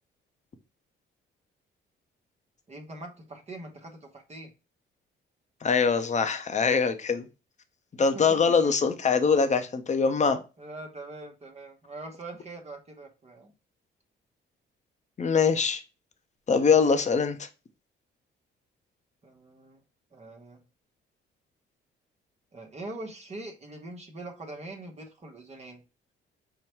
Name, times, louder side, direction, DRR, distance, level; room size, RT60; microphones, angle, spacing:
voice 1, 2.7-4.5 8.0-8.7 10.6-13.5 19.2-19.8 20.1-20.6 22.5-25.8, right 2 dB, 35° right, 1.0 m, -43 dB
voice 2, 5.6-7.3 8.0-10.4 15.2-15.8 16.5-17.5, left 5 dB, 35° left, 0.7 m, -23 dB
5.5 x 2.2 x 4.4 m
cardioid pair, 90°, 20 cm